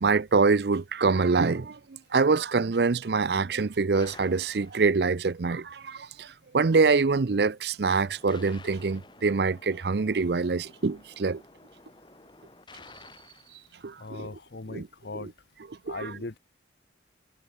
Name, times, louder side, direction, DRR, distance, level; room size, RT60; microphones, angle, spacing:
voice 1, 0.0-1.8 2.1-6.3 6.5-11.4 13.8-14.3 14.7-14.9 15.9-16.0, right 4 dB, 70° right, 0.6 m, -25 dB
sound 1, 3.9-5.4 8.0-14.6, left 3 dB, 25° left, 3.1 m, -52 dB
voice 2, 14.0-15.3 15.9-16.4, left 3 dB, 70° left, 1.0 m, -39 dB
head